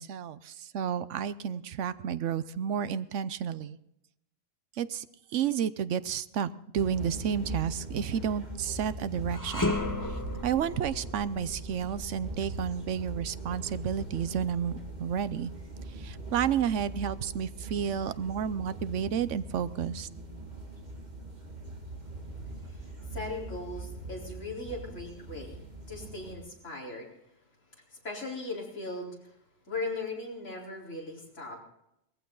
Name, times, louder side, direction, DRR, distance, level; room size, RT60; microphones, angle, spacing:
voice 1, 0.0-3.8 4.8-5.0 5.3-6.5 6.7-9.8 10.4-15.5 16.0-20.1, right 8 dB, 70° right, 15 dB, 1.0 m, -31 dB
sound 1, 6.7-26.4, right 2 dB, 35° right, 2.2 m, -41 dB
sound 2, 9.3-18.5 19.0-19.1 20.0-20.9, left 2 dB, 15° left, 1.3 m, -38 dB
voice 2, 22.6-25.6 25.9-27.1 27.9-29.3 29.7-31.6, left 2 dB, 70° left, -3 dB, 4.5 m, -38 dB
19.0 x 15.0 x 3.9 m, 0.81 s
omnidirectional pair, 1.3 m